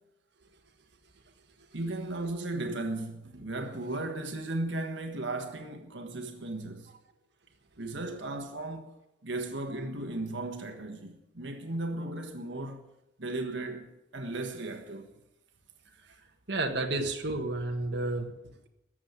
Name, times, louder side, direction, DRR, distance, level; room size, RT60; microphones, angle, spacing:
voice 1, 1.7-6.9 7.8-8.9 9.2-12.8 13.2-15.1 16.1-16.2, right 2 dB, 90° right, 1.5 m, -36 dB
voice 2, 16.5-18.7, right 2 dB, 70° right, 1.6 m, -31 dB
14.0 x 7.5 x 9.5 m
head